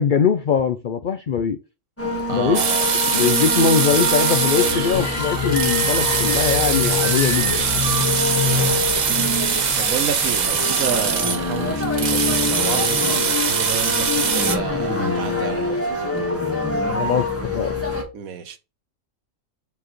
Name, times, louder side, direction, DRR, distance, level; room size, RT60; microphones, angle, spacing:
voice 1, 0.0-1.6 2.3-2.6 3.1-7.7 16.9-17.8, left 6 dB, 80° left, 0.4 m, -21 dB
sound 1, 2.0-18.0, left 2 dB, 10° left, 1.4 m, -25 dB
voice 2, 2.3-3.0 8.4-16.1 18.1-18.6, right 7 dB, 75° right, 1.3 m, -31 dB
sound 2, 2.5-14.6, right 6 dB, 45° right, 0.6 m, -22 dB
sound 3, 4.9-10.0, left 5 dB, 65° left, 1.7 m, -28 dB
7.1 x 4.7 x 3.0 m
omnidirectional pair, 1.5 m